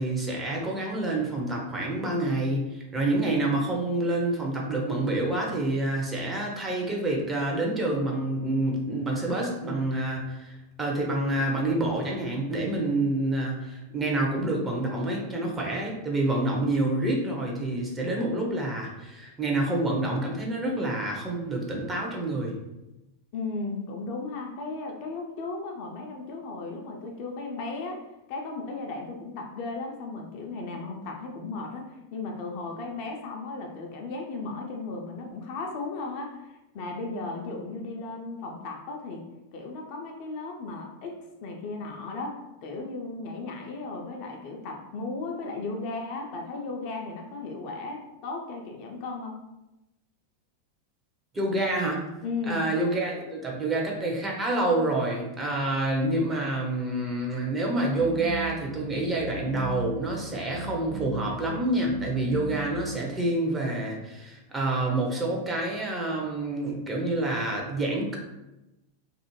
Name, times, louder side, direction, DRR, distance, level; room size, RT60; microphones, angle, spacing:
voice 1, 0.0-22.5 51.3-52.0 52.5-68.2, right 2 dB, 15° right, -2 dB, 0.6 m, -28 dB
voice 2, 23.3-28.0 28.3-39.2 39.5-49.4 52.2-52.6, left 3 dB, 45° left, 1 dB, 0.4 m, -35 dB
sound 1, 58.0-63.0, right 3 dB, 50° right, 0.9 m, -38 dB
2.4 x 2.0 x 3.0 m, 0.95 s
figure-of-eight pair, 90°, 0 cm